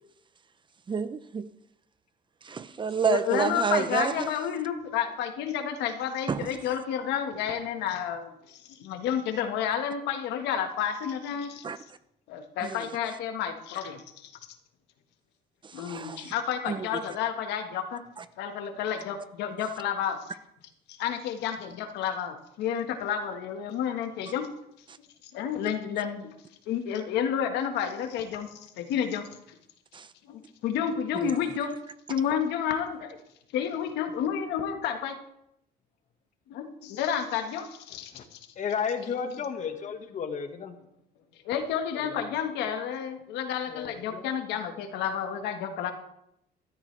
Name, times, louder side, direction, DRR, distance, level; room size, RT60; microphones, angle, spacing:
voice 1, 0.9-1.4 2.4-4.1 6.3-6.4 11.6-11.8 12.6-12.7 15.8-16.2 16.7-16.9 29.9-30.1 31.2-31.3, right 6 dB, 30° right, 0.7 m, -28 dB
voice 2, 2.9-11.7 12.3-14.3 15.7-18.1 18.4-20.4 20.9-24.5 25.2-26.3 26.7-29.6 30.2-31.8 32.1-33.2 33.5-35.2 36.5-38.5 39.0-39.5 41.5-45.9, left 8 dB, 85° left, 1.6 m, -31 dB
voice 3, 38.6-40.7 42.0-42.2 43.7-44.3, left 6 dB, 45° left, 1.7 m, -33 dB
14.5 x 12.5 x 3.4 m
cardioid pair, 110°, 17 cm